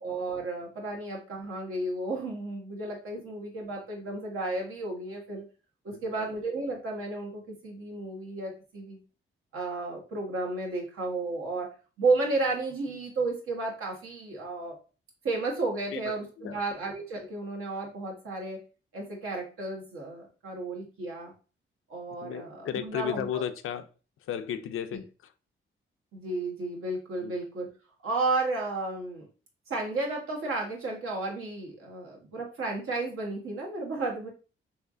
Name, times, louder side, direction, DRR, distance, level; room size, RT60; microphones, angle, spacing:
voice 1, 0.0-5.4 5.8-9.0 9.5-11.7 12.0-14.8 15.2-18.6 18.9-21.3 21.9-23.4 24.9-25.0 26.1-27.7 28.0-29.3 29.7-34.3, right 3 dB, 85° right, 1.2 m, -33 dB
voice 2, 22.2-23.8 24.3-25.0 27.2-27.3, left 9 dB, 80° left, 0.4 m, -34 dB
3.2 x 2.9 x 2.5 m
cardioid pair, 95°, 21 cm